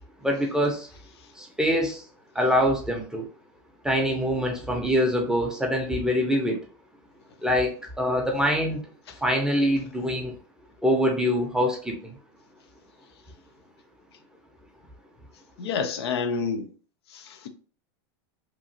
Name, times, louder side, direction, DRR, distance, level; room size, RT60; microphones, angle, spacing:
voice 1, 0.2-0.9 1.4-2.0 2.3-3.3 3.8-6.6 7.4-8.9 9.2-10.3 10.8-12.1, equal, 5° right, 0.6 m, -24 dB
voice 2, 15.6-16.7 17.1-17.5, left 5 dB, 85° left, 0.5 m, -28 dB
2.9 x 2.4 x 2.6 m
supercardioid pair, 115°, 13 cm